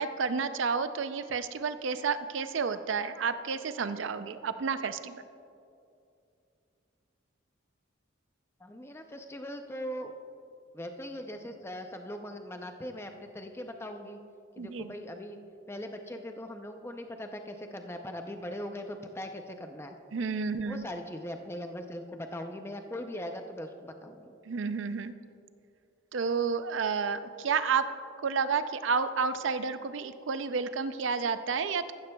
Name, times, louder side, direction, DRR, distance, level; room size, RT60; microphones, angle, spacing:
voice 1, 0.0-5.2 14.6-14.9 20.1-20.9 24.4-25.1 26.1-27.9 28.2-31.9, right 5 dB, 70° right, 11 dB, 0.5 m, -30 dB
voice 2, 8.6-10.1 10.7-14.2 14.6-15.4 15.7-19.9 20.6-24.4, equal, 15° left, 5 dB, 0.5 m, -40 dB
14.5 x 12.5 x 2.3 m, 2.6 s
head